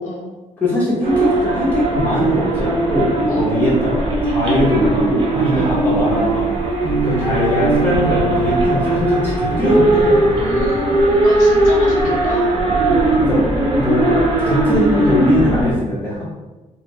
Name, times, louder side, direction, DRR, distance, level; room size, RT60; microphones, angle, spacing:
voice 1, 0.0-0.3 3.3-3.6 5.5-5.8 10.3-12.7, left 1 dB, 90° left, -2 dB, 1.0 m, -30 dB
voice 2, 0.6-3.1 3.3-6.5 7.0-10.2 12.9-13.4 13.7-16.2, left 1 dB, 15° left, -8 dB, 1.0 m, -20 dB
sound 1, 1.0-15.7, right 2 dB, 40° right, 0.9 m, -18 dB
sound 2, 5.3-11.4, right 5 dB, 80° right, 0.5 m, -26 dB
3.3 x 2.2 x 3.0 m, 1.1 s
cardioid pair, 130°, 13 cm